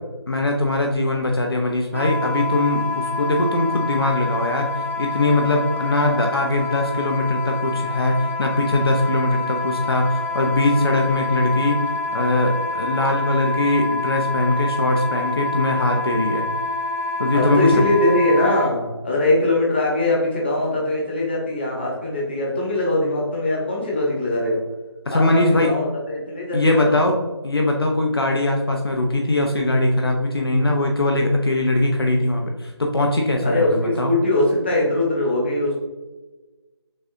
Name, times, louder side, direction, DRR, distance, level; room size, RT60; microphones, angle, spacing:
voice 1, 0.3-11.8 12.1-16.4 17.2-17.8 25.1-25.7 26.5-34.1, left 2 dB, 60° left, 2 dB, 0.6 m, -21 dB
Wind instrument woodwind instrument, 1.9-18.7, left 3 dB, 30° right, 0.5 m, -27 dB
voice 2, 17.3-24.6 25.1-27.0 33.4-35.7, left 1 dB, 25° left, -3 dB, 0.9 m, -21 dB
6.4 x 2.3 x 2.7 m, 1.2 s
figure-of-eight pair, 160°, 14 cm